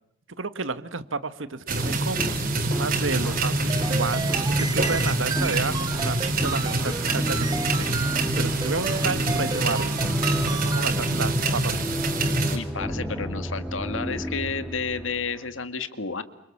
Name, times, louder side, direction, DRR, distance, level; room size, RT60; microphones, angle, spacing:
voice 1, 0.4-10.0 10.3-12.1, right 3 dB, 85° right, 13 dB, 1.6 m, -32 dB
sound 1, 1.7-12.6, right 2 dB, 45° right, 4.0 m, -25 dB
sound 2, 1.8-15.5, equal, ahead, 3.3 m, -35 dB
sound 3, 3.7-10.9, right 3 dB, 20° right, 1.0 m, -33 dB
voice 2, 12.5-16.2, left 4 dB, 90° left, 11 dB, 2.0 m, -31 dB
30.0 x 27.0 x 7.3 m, 0.81 s
head